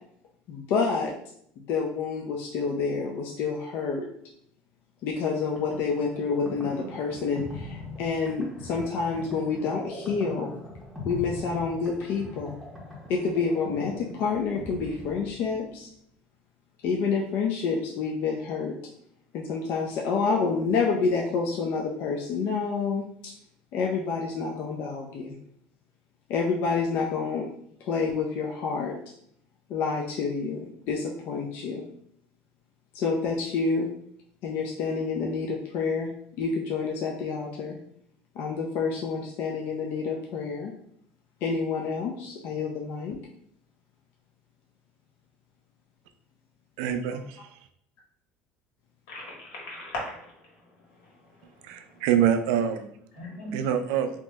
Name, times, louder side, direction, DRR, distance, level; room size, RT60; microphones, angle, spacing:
voice 1, 0.5-1.1 1.6-4.1 5.0-10.5 11.0-12.5 13.1-15.9 16.8-18.8 19.3-23.3 23.7-25.4 26.3-27.5 27.8-29.0 29.7-31.9 32.9-33.9 34.4-36.1 36.4-37.8 38.4-40.7 41.4-43.2, left 5 dB, 55° left, 0.4 m, -28 dB
sound 1, 5.4-15.8, left 1 dB, 5° left, 0.7 m, -41 dB
voice 2, 46.8-47.5 51.6-52.9 53.5-54.1, right 9 dB, 80° right, 0.3 m, -25 dB
voice 3, 49.1-52.0 53.1-53.6, left 1 dB, 80° left, 1.5 m, -40 dB
2.8 x 2.0 x 3.3 m
cardioid pair, 155°, 4 cm